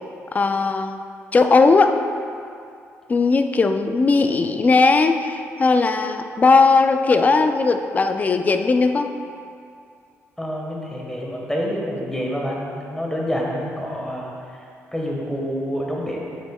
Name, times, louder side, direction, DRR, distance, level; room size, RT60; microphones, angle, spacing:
voice 1, 0.3-1.0 1.3-2.0 3.1-9.1, left 4 dB, 30° left, 7 dB, 0.4 m, -18 dB
voice 2, 10.4-14.3 14.9-16.2, equal, 10° left, -2 dB, 1.4 m, -27 dB
8.9 x 7.1 x 2.3 m, 2.4 s
cardioid pair, 90°, 5 cm